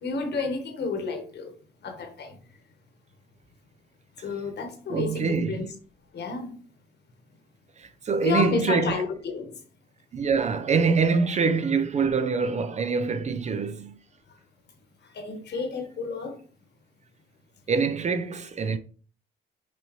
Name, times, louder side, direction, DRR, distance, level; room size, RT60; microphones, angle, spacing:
voice 1, 0.0-1.5 1.8-2.4 4.2-5.7 6.1-6.6 8.2-9.5 15.1-16.4, left 4 dB, 60° left, 1.3 m, -31 dB
voice 2, 4.9-5.6 7.8-9.0 10.1-13.9 17.7-18.8, right 5 dB, 35° right, 0.4 m, -25 dB
6.1 x 2.8 x 3.1 m
cardioid pair, 90°, 20 cm